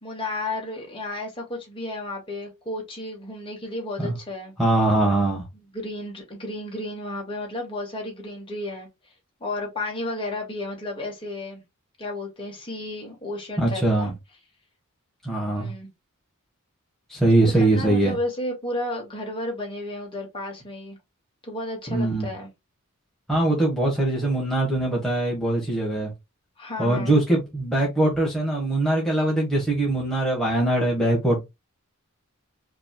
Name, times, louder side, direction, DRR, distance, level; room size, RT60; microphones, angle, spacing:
voice 1, 0.0-4.5 5.5-9.1 9.4-11.6 12.0-14.1 15.5-15.9 17.4-21.0 21.4-22.5 26.6-27.2, left 1 dB, 25° left, 2.0 m, -33 dB
voice 2, 4.6-5.4 13.6-14.1 15.2-15.7 17.1-18.1 21.9-22.3 23.3-26.1 26.8-31.4, right 2 dB, ahead, 1.4 m, -22 dB
5.0 x 3.2 x 2.3 m
head